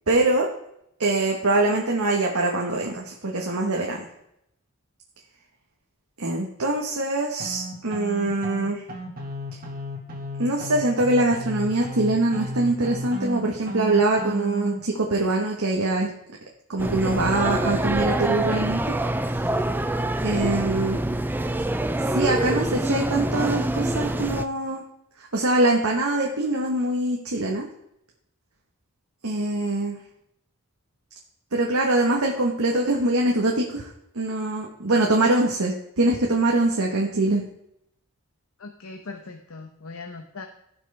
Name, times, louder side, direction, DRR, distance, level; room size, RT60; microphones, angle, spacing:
voice 1, 0.1-0.5 1.0-4.1 6.2-8.8 10.4-16.1 16.7-19.0 20.2-21.0 22.1-24.8 25.3-27.7 29.2-30.0 31.5-33.9 34.1-37.4, right 2 dB, 75° right, -1 dB, 1.4 m, -23 dB
sound 1, 7.4-14.8, equal, 40° right, 1.8 m, -33 dB
sound 2, 16.8-24.4, right 1 dB, 10° right, 0.4 m, -25 dB
voice 2, 38.6-40.5, left 3 dB, 70° left, 4 dB, 0.9 m, -39 dB
16.5 x 6.1 x 3.4 m, 0.78 s
head